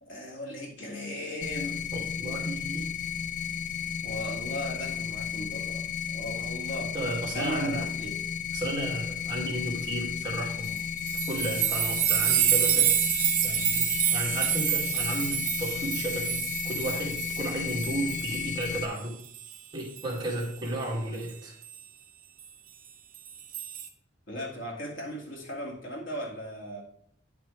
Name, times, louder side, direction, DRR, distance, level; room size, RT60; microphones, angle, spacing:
voice 1, 0.0-1.8 4.0-6.9 7.3-8.2 24.3-26.8, equal, 75° left, -1 dB, 2.1 m, -37 dB
sound 1, 1.4-18.9, left 8 dB, 40° left, 0.4 m, -34 dB
voice 2, 1.9-2.9 6.9-7.9 8.5-10.8 11.3-12.9 13.4-19.2 19.7-21.5, right 1 dB, 25° right, -4 dB, 2.2 m, -33 dB
sound 2, 10.6-19.0 19.3-20.4 21.6-21.7 23.1-23.9, right 11 dB, 45° right, 0.8 m, -28 dB
10.0 x 6.1 x 3.2 m, 0.62 s
head